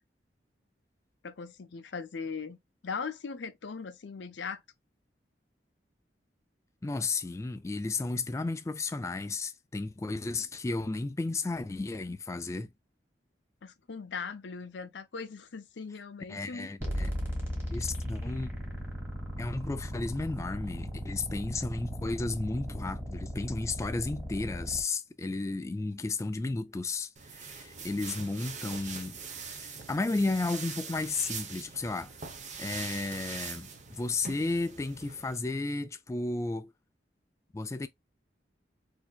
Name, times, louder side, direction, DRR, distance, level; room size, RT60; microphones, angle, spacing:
voice 1, 1.2-2.6 2.8-4.6 13.6-16.7, left 5 dB, 85° left, 0.6 m, -39 dB
voice 2, 6.8-12.7 16.3-17.1 17.7-18.5 19.4-32.1 32.6-36.7 37.5-37.9, left 3 dB, 15° left, 0.3 m, -33 dB
sound 1, 16.8-24.8, equal, 10° right, 1.9 m, -37 dB
sound 2, 27.2-35.4, right 5 dB, 45° right, 0.9 m, -42 dB
4.2 x 2.8 x 2.2 m
head